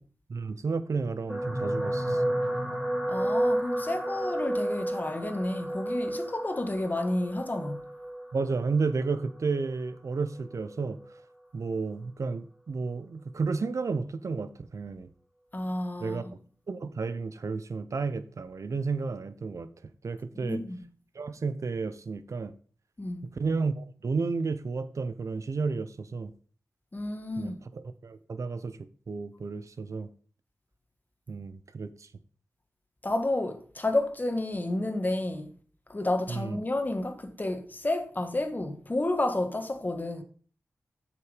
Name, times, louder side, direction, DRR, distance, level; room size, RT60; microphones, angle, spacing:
voice 1, 0.3-2.2 8.3-11.0 11.5-15.1 16.0-16.3 16.7-19.7 20.0-20.6 21.1-22.5 23.4-26.3 27.4-27.5 28.0-28.8 29.1-30.1 31.3-32.1 36.3-36.6, right 4 dB, 70° right, 0.8 m, -32 dB
sound 1, 1.3-9.7 10.5-10.7 11.0-11.1, right 1 dB, 5° right, 2.4 m, -31 dB
voice 2, 3.1-7.9 15.5-16.3 20.4-20.8 23.0-23.3 26.9-27.6 33.0-35.5 35.9-40.2, left 2 dB, 35° left, 1.5 m, -31 dB
7.8 x 6.1 x 5.1 m
cardioid pair, 50°, 5 cm